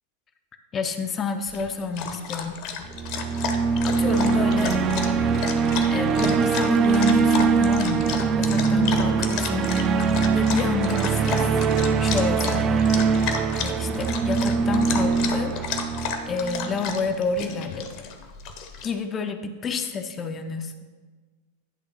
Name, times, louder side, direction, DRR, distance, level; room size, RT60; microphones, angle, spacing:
voice 1, 0.7-2.6 3.5-4.7 5.5-8.1 8.4-9.7 10.3-11.5 12.0-15.5 15.8-15.9 16.3-17.9 18.8-20.9, left 4 dB, 25° left, 6 dB, 0.6 m, -29 dB
Dog, 1.5-18.9, left 6 dB, 45° left, 0.9 m, -33 dB
sound 1, 2.9-17.1, right 5 dB, 30° right, 0.4 m, -22 dB
10.5 x 3.6 x 5.8 m, 1.4 s
figure-of-eight pair, 90°, 0 cm